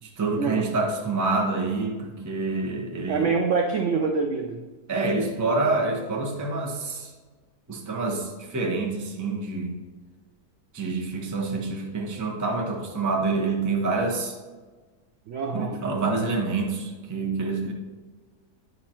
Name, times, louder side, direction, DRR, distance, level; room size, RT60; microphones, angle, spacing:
voice 1, 0.0-3.3 4.9-7.1 7.7-9.8 10.7-14.4 15.5-17.7, right 3 dB, 20° right, 0 dB, 0.4 m, -27 dB
voice 2, 3.1-4.6 15.3-15.8, right 4 dB, 70° right, 4 dB, 0.7 m, -25 dB
9.4 x 5.3 x 2.9 m, 1.4 s
omnidirectional pair, 1.8 m